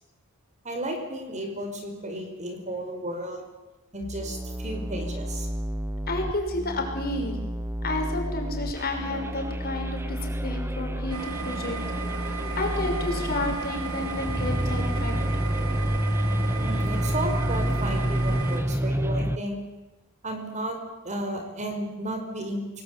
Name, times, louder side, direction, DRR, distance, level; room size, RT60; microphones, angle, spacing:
voice 1, 0.6-3.4 3.9-5.5 16.6-19.6 20.2-20.8 21.0-22.8, right 1 dB, 35° right, 4 dB, 5.3 m, -33 dB
sound 1, 4.0-19.4, equal, 10° right, 0.9 m, -29 dB
voice 2, 6.1-7.5 7.8-11.8 12.6-15.1, left 2 dB, 45° left, 2 dB, 5.9 m, -31 dB
sound 2, 11.1-18.6, right 4 dB, 85° right, 4.1 m, -35 dB
27.5 x 20.0 x 8.4 m, 1.1 s
head